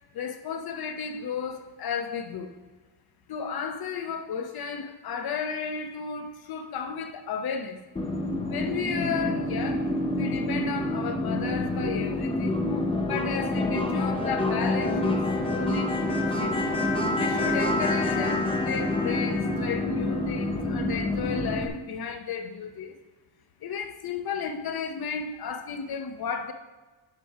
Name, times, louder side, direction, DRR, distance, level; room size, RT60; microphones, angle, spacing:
voice 1, 0.1-2.5 3.3-7.8 8.5-12.6 13.0-16.6 17.1-23.0 23.6-26.5, left 6 dB, 50° left, 0.8 m, -33 dB
sound 1, 8.0-21.7, left 2 dB, 10° left, 0.6 m, -27 dB
11.5 x 4.3 x 4.8 m
wide cardioid pair, 165°, 47 cm